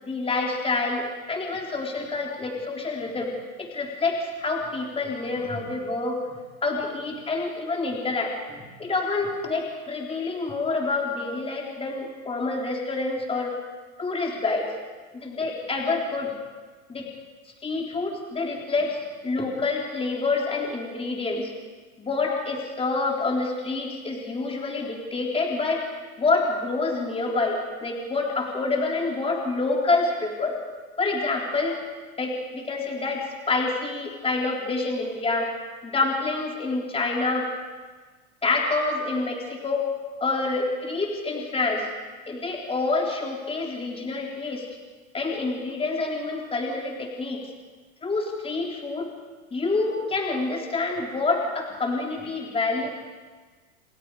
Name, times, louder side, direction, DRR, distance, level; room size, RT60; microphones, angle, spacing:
voice 1, 0.0-3.3 3.6-6.2 6.6-13.5 14.0-14.7 15.1-16.3 16.9-17.1 17.6-19.0 19.2-21.5 22.0-25.9 26.2-30.6 31.0-31.8 32.2-35.5 35.8-37.5 38.4-39.9 40.2-41.9 42.3-44.7 45.1-47.5 48.0-49.1 49.5-52.9, left 3 dB, 15° left, 0 dB, 3.9 m, -27 dB
29.0 x 26.0 x 5.0 m, 1.4 s
supercardioid pair, 125°, 41 cm